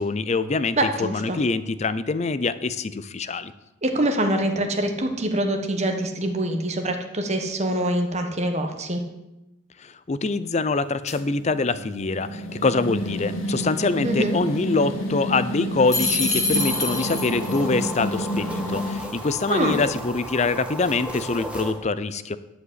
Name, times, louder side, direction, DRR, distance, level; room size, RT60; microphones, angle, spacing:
voice 1, 0.0-3.5 9.8-22.4, left 3 dB, 35° left, 14 dB, 0.5 m, -24 dB
voice 2, 0.8-1.4 3.8-9.0 14.0-14.4 19.5-19.8, right 1 dB, 35° right, 5 dB, 1.2 m, -24 dB
sound 1, 11.1-19.0, equal, 80° left, 2.0 m, -30 dB
sound 2, 15.9-17.6, left 3 dB, 20° left, 1.8 m, -25 dB
sound 3, 16.5-21.7, equal, 5° right, 1.3 m, -34 dB
11.0 x 5.1 x 8.1 m, 0.96 s
head